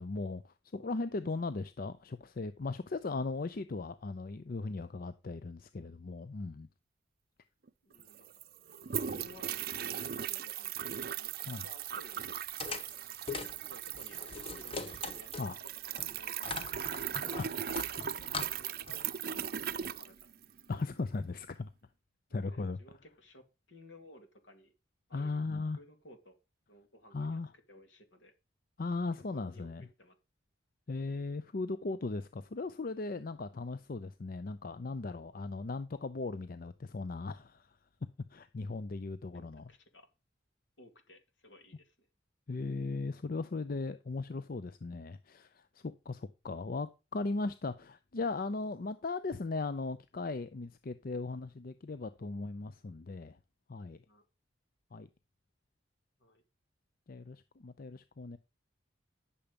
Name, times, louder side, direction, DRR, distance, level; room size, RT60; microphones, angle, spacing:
voice 1, 0.0-6.7 11.5-11.7 15.4-15.6 17.4-17.5 20.7-21.7 22.3-22.8 25.1-25.8 27.1-27.5 28.8-29.8 30.9-37.7 38.3-39.6 42.5-53.4 53.7-54.0 54.9-55.1 57.1-58.4, left 3 dB, 45° left, 0.5 m, -38 dB
voice 2, 0.7-1.3 7.8-8.3 8.9-12.4 13.7-15.5 15.9-18.1 18.6-20.3 22.3-24.7 25.1-25.4 25.7-26.3 26.7-27.4 27.7-28.3 29.3-30.2 39.3-40.1 40.8-42.1 54.1-54.2 56.2-56.4, left 1 dB, 70° left, 2.4 m, -57 dB
sound 1, 7.7-7.8 7.9-20.7, right 9 dB, 50° right, 0.5 m, -39 dB
sound 2, 12.6-15.6 16.0-19.2, left 4 dB, 30° left, 0.9 m, -42 dB
10.0 x 7.0 x 5.2 m
head